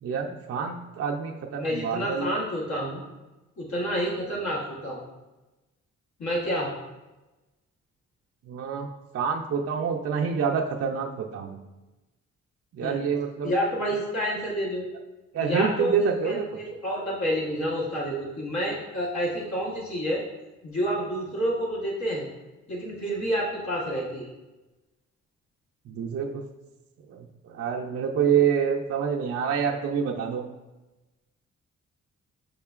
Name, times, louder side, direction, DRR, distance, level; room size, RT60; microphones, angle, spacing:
voice 1, 0.0-2.3 8.5-8.9 9.1-11.6 12.7-13.5 15.3-16.5 25.9-26.4 27.1-30.4, right 7 dB, 55° right, 1 dB, 0.4 m, -27 dB
voice 2, 1.6-3.0 3.6-5.0 6.2-6.7 12.8-13.0 13.4-14.8 15.4-16.4 16.8-20.2 20.6-22.3 22.7-24.3, equal, 70° left, -5 dB, 1.2 m, -29 dB
5.4 x 3.7 x 2.4 m, 1.1 s
cardioid pair, 70°, 29 cm